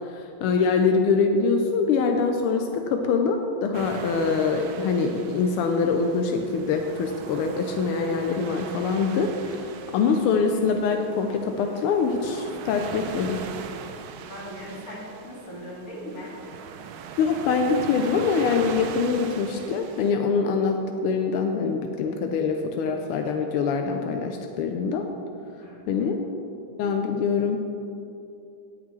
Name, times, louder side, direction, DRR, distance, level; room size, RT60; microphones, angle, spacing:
voice 1, 0.1-9.7 9.9-13.4 17.2-25.0 25.9-26.2 26.8-27.6, left 5 dB, 85° left, 4 dB, 1.5 m, -24 dB
sound 1, 3.7-20.1, right 7 dB, 75° right, 1.3 m, -40 dB
voice 2, 14.3-16.3 25.6-26.1, equal, 40° left, -6 dB, 2.5 m, -39 dB
17.0 x 6.0 x 3.2 m, 2.6 s
omnidirectional pair, 2.4 m